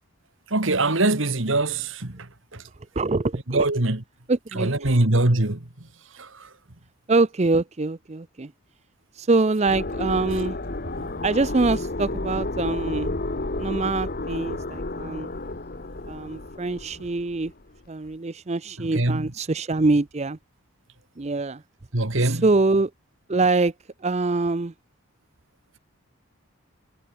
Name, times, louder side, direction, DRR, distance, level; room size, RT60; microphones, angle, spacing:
voice 1, 0.5-2.3 2.5-2.6 3.5-4.0 4.6-5.6 6.2-6.3 18.8-19.3 21.9-22.4, right 2 dB, 60° right, 2.1 m, -22 dB
voice 2, 3.0-3.7 4.3-4.9 7.1-8.5 9.1-10.6 11.2-13.1 13.6-15.3 16.1-17.5 17.9-20.4 21.2-21.6 22.2-22.9 23.3-23.7 24.0-24.7, right 3 dB, 30° right, 0.5 m, -24 dB
sound 1, 9.7-17.5, left 2 dB, 45° left, 1.3 m, -31 dB
head